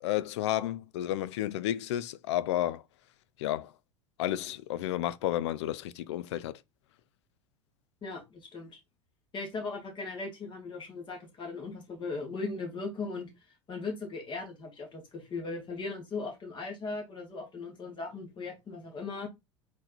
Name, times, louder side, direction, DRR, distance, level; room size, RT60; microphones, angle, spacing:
voice 1, 0.0-2.8 3.4-3.7 4.2-6.5, left 13 dB, 60° left, 0.4 m, -31 dB
voice 2, 8.0-8.7 9.3-13.3 13.7-19.3, left 3 dB, 30° left, 2.2 m, -38 dB
3.9 x 3.1 x 4.0 m
figure-of-eight pair, 80°, 16 cm